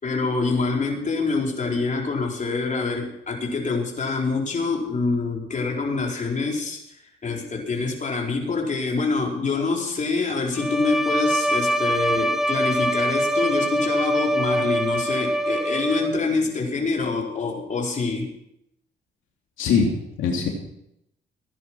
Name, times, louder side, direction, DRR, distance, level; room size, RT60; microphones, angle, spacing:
voice 1, 0.0-18.3, left 3 dB, 40° left, -1 dB, 4.4 m, -26 dB
Bowed string instrument, 10.5-16.4, equal, ahead, 0.9 m, -24 dB
voice 2, 19.6-20.5, left 5 dB, 80° left, -1 dB, 3.1 m, -22 dB
16.0 x 10.5 x 6.0 m, 0.78 s
cardioid pair, 90°, 20 cm